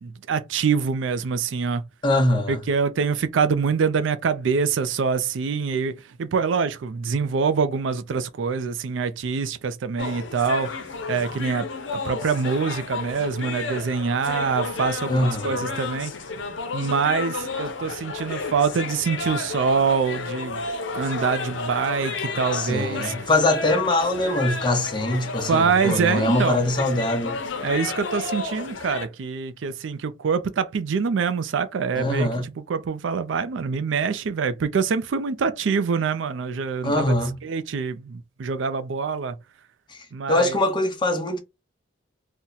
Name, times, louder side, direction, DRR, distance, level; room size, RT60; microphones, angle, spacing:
voice 1, 0.0-1.8 2.5-10.7 11.1-16.1 16.7-20.6 20.9-23.1 25.5-26.6 27.6-37.1 37.4-39.4 40.1-40.6, right 5 dB, 75° right, 0.4 m, -25 dB
voice 2, 2.0-2.6 15.1-15.7 22.5-27.4 32.0-32.5 36.8-37.4 39.9-41.4, left 1 dB, 25° left, 0.7 m, -23 dB
sound 1, 10.0-29.1, left 4 dB, 75° left, 0.6 m, -32 dB
2.8 x 2.1 x 3.8 m
head